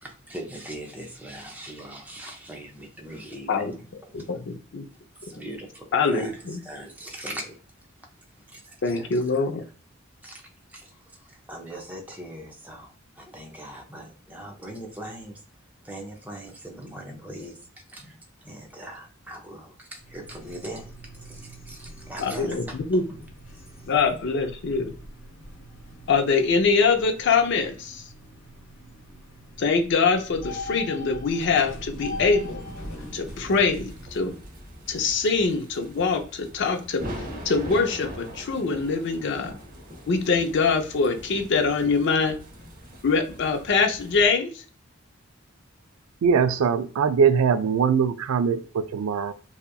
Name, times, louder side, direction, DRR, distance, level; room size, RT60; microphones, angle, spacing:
voice 1, 0.0-3.6 4.0-4.3 5.2-7.6 8.4-9.5 10.2-15.4 15.8-20.9 21.2-23.0, right 1 dB, 10° right, 1 dB, 0.5 m, -41 dB
voice 2, 4.1-4.9 5.9-6.6 8.8-9.6 22.2-23.0 23.8-24.9 26.1-28.1 29.6-32.6 33.1-34.3 34.9-39.5 40.1-42.4 43.0-44.6, left 4 dB, 60° left, 5 dB, 0.4 m, -24 dB
sound 1, 19.9-34.4, left 1 dB, 80° left, 0.9 m, -42 dB
sound 2, 32.6-44.3, equal, 45° right, 0.7 m, -41 dB
voice 3, 46.2-49.3, right 6 dB, 90° right, 11 dB, 0.3 m, -22 dB
2.8 x 2.3 x 2.2 m, 0.41 s
head